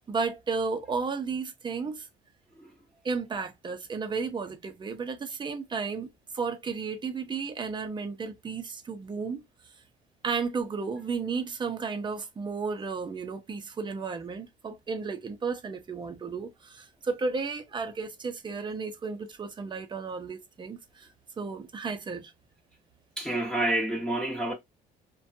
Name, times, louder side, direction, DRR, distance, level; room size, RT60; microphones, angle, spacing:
voice 1, 0.1-2.1 3.0-6.1 6.3-9.4 10.2-21.1 21.4-22.3, right 4 dB, 25° right, 0.6 m, -33 dB
voice 2, 23.2-24.5, right 1 dB, 5° left, 0.8 m, -29 dB
2.6 x 2.3 x 2.6 m
cardioid pair, 110°, 17 cm